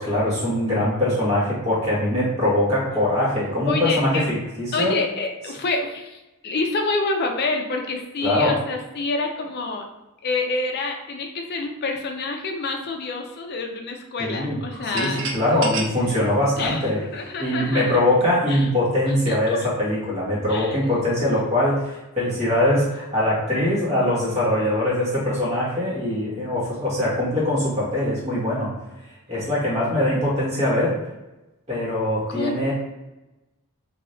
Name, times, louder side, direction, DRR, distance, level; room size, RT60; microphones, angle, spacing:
voice 1, 0.0-4.9 8.2-8.5 14.2-17.0 17.4-28.7 29.3-31.0 31.7-32.7, left 1 dB, 30° right, -7 dB, 1.3 m, -22 dB
voice 2, 3.7-4.3 4.7-9.8 10.2-15.3 16.6-17.9 18.5-18.7 19.3-19.7 20.5-20.7 32.3-32.6, left 3 dB, 45° left, 3 dB, 0.4 m, -27 dB
sound 1, 14.7-17.5, right 4 dB, 55° right, 0.5 m, -32 dB
3.1 x 2.7 x 2.6 m, 1.0 s
head